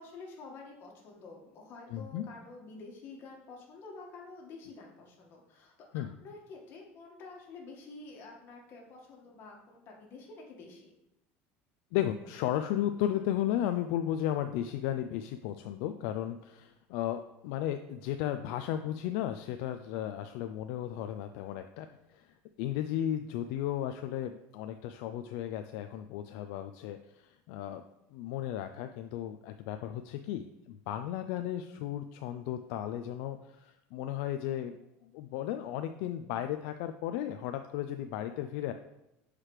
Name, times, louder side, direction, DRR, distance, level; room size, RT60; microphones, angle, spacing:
voice 1, 0.0-10.9, left 3 dB, 40° left, -1 dB, 1.6 m, -49 dB
voice 2, 1.9-2.2 5.9-6.1 11.9-27.8 28.1-34.8 35.1-38.7, left 11 dB, 65° left, 7 dB, 0.4 m, -35 dB
7.4 x 4.8 x 3.2 m, 0.87 s
cardioid pair, 145°, 6 cm